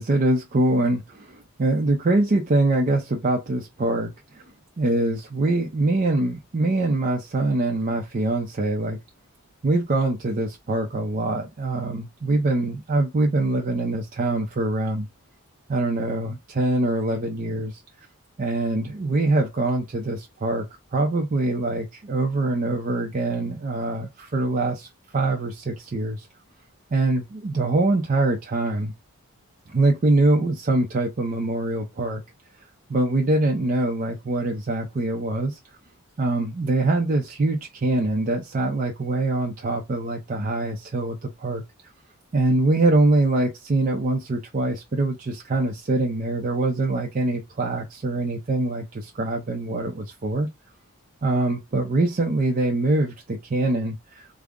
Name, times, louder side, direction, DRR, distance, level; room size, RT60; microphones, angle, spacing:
voice 1, 0.0-4.4 4.8-9.0 9.6-15.1 15.7-17.8 18.4-20.7 20.9-26.3 26.9-28.9 29.7-32.2 32.9-35.6 36.2-41.6 42.3-50.5 51.2-54.3, right 2 dB, 35° right, 0.5 m, -24 dB
3.5 x 2.0 x 3.5 m
head